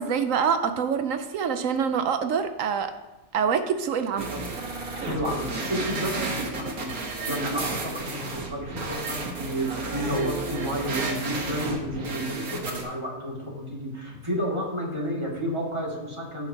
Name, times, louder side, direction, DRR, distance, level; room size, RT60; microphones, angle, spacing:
voice 1, 0.0-2.9 3.3-4.4, right 6 dB, 70° right, 8 dB, 1.0 m, -25 dB
sound 1, 4.2-12.8, right 3 dB, 85° right, 1.8 m, -32 dB
voice 2, 5.0-16.5, equal, 20° right, -5 dB, 2.5 m, -31 dB
16.5 x 5.8 x 2.9 m, 1.0 s
omnidirectional pair, 1.5 m